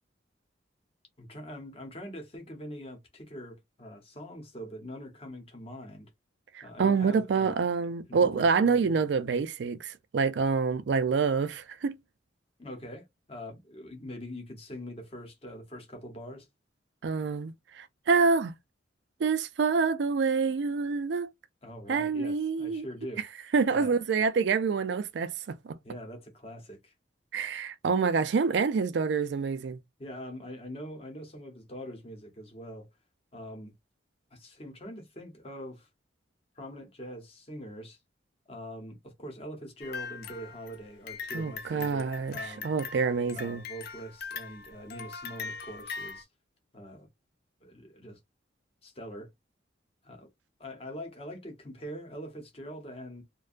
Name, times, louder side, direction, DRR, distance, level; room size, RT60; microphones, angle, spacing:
voice 1, 1.2-6.1 6.6-7.6 8.1-9.1 12.6-16.5 21.6-23.2 23.7-24.0 25.8-26.9 30.0-32.9 33.3-33.7 34.3-35.9 36.5-38.0 38.5-42.7 43.3-46.3 46.7-47.1 47.6-48.2 48.8-49.3 50.0-50.3 50.6-53.2, equal, 30° left, 0.8 m, -43 dB
voice 2, 6.5-12.0 17.0-18.5 19.2-21.3 21.9-22.9 23.5-25.8 27.3-29.8 41.3-43.6, right 5 dB, 70° right, 0.4 m, -27 dB
sound 1, 39.8-46.2, left 5 dB, 55° left, 0.4 m, -41 dB
2.5 x 2.2 x 2.4 m
head